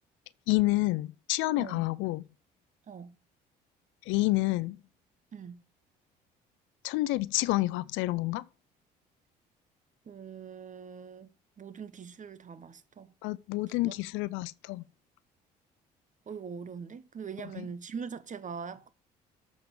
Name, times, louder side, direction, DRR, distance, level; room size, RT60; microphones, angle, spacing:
voice 1, 0.5-2.2 4.1-4.8 6.8-8.4 13.2-14.8 17.4-17.7, left 19 dB, 70° left, 0.5 m, -29 dB
voice 2, 5.3-5.6 10.1-11.3 11.6-13.1 13.9-14.0 16.3-18.9, right 6 dB, 40° right, 1.1 m, -42 dB
8.0 x 5.0 x 7.0 m
hypercardioid pair, 60°, 21 cm